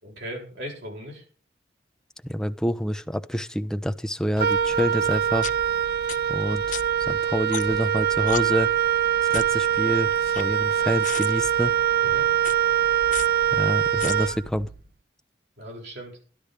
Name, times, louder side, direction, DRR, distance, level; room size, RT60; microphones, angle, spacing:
voice 1, 0.0-1.2 12.0-12.3 15.6-16.1, equal, 75° right, -1 dB, 7.3 m, -38 dB
voice 2, 2.2-5.5 6.3-6.8 7.1-8.7 9.2-11.7 13.5-14.7, equal, 5° left, 8 dB, 0.6 m, -27 dB
Wind instrument woodwind instrument, 4.4-14.8, right 10 dB, 55° right, 0.9 m, -23 dB
sound 1, 4.5-4.6 5.4-5.5 6.1-6.2 6.7-6.8 7.5-7.8 8.3-8.4 9.3-9.6 10.1-10.8 11.0-11.3 12.4-12.5 13.1-13.3 14.0-14.1, left 9 dB, 45° left, 0.6 m, -33 dB
12.0 x 12.0 x 4.9 m, 0.40 s
head